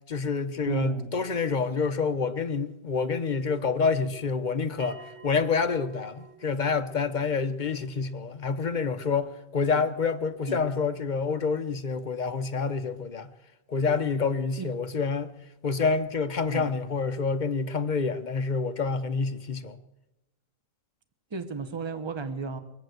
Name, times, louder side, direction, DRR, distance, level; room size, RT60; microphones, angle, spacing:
voice 1, 0.1-13.3 13.7-15.3 15.6-19.8, left 5 dB, 45° left, 0.6 m, -28 dB
voice 2, 0.6-1.1 10.5-10.6 14.6-14.7 16.5-16.7 21.3-22.6, right 4 dB, 25° right, 0.9 m, -33 dB
Bell, 4.8-9.8, right 5 dB, 65° right, 1.3 m, -52 dB
22.5 x 8.0 x 7.8 m
omnidirectional pair, 1.4 m